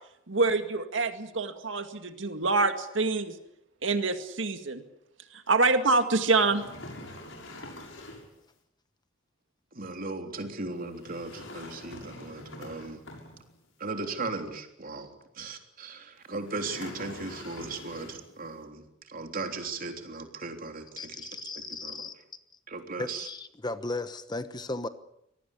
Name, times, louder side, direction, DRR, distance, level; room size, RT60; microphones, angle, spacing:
voice 1, 0.3-3.4 3.8-4.8 5.3-6.6, right 3 dB, 70° right, 7 dB, 2.0 m, -26 dB
sound 1, 6.1-8.4 10.9-13.7 16.4-18.4, left 1 dB, 80° left, 7.0 m, -45 dB
voice 2, 9.7-13.0 13.8-22.0 22.7-23.3, right 3 dB, 45° right, 5 dB, 3.5 m, -37 dB
voice 3, 21.0-22.2 23.0-24.9, left 2 dB, 20° left, 11 dB, 1.1 m, -36 dB
24.5 x 19.0 x 8.5 m, 0.81 s
head